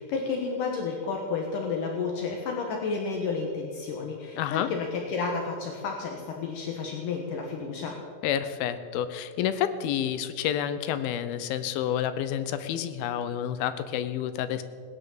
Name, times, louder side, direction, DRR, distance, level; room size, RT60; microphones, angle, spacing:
voice 1, 0.0-8.0, left 4 dB, 70° left, 1 dB, 2.7 m, -31 dB
voice 2, 4.3-4.7 8.2-14.6, left 10 dB, 90° left, 12 dB, 2.7 m, -29 dB
18.5 x 10.0 x 7.2 m, 2.1 s
omnidirectional pair, 4.2 m